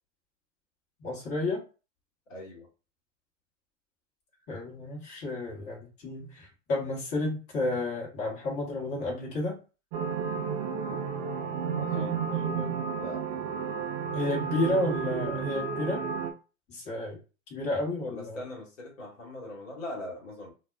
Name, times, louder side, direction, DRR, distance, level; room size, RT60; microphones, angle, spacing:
voice 1, 1.0-1.6 4.5-9.6 12.3-12.8 14.1-16.0 16.7-17.2 17.5-18.4, left 2 dB, 35° left, -4 dB, 1.4 m, -31 dB
voice 2, 2.3-2.7 11.8-12.4 12.9-13.2 18.0-20.5, left 1 dB, 65° left, -2 dB, 1.4 m, -41 dB
sound 1, 9.9-16.3, right 6 dB, 30° right, 0.4 m, -32 dB
2.6 x 2.2 x 2.3 m, 0.33 s
hypercardioid pair, 105°, 41 cm